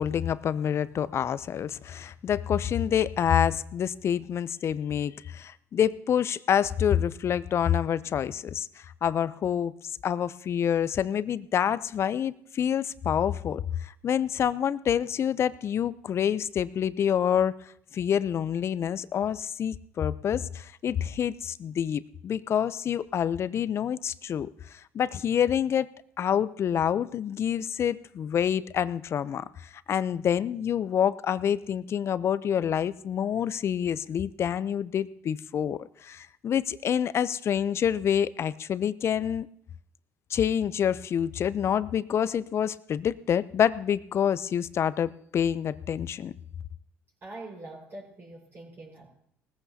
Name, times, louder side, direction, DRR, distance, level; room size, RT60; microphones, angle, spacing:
voice 1, 0.0-8.7 9.0-9.7 10.0-17.5 17.9-25.9 26.2-39.5 40.3-46.3, left 9 dB, 50° left, 17 dB, 0.5 m, -27 dB
voice 2, 47.2-49.1, right 2 dB, 40° right, -2 dB, 5.0 m, -43 dB
19.0 x 14.5 x 2.8 m, 0.68 s
hypercardioid pair, 70°, 6 cm